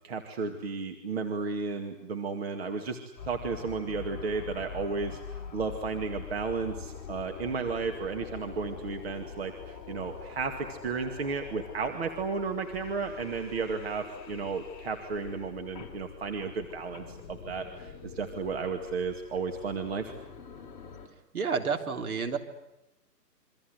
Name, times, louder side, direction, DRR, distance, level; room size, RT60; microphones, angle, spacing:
voice 1, 0.0-3.0 3.2-20.1, right 4 dB, 40° right, 5 dB, 2.3 m, -33 dB
sound 1, 3.2-21.1, left 7 dB, 25° left, 4.2 m, -44 dB
voice 2, 21.3-22.4, right 5 dB, 55° right, 6 dB, 3.7 m, -30 dB
27.5 x 24.5 x 8.0 m, 0.91 s
hypercardioid pair, 160°, 50 cm